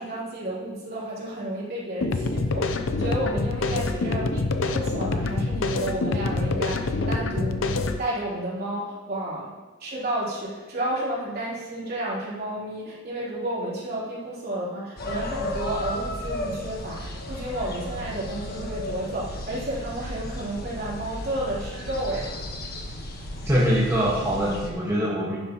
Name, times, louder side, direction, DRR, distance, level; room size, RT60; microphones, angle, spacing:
voice 1, 0.0-7.6 8.0-9.5 9.8-22.3, right 1 dB, 50° right, -7 dB, 3.3 m, -31 dB
sound 1, 2.0-8.0, left 3 dB, 80° left, 0.6 m, -26 dB
sound 2, 15.0-24.7, left 1 dB, 50° left, 1.4 m, -34 dB
voice 2, 23.5-25.4, equal, 15° right, -7 dB, 1.6 m, -23 dB
11.0 x 10.5 x 3.0 m, 1.3 s
head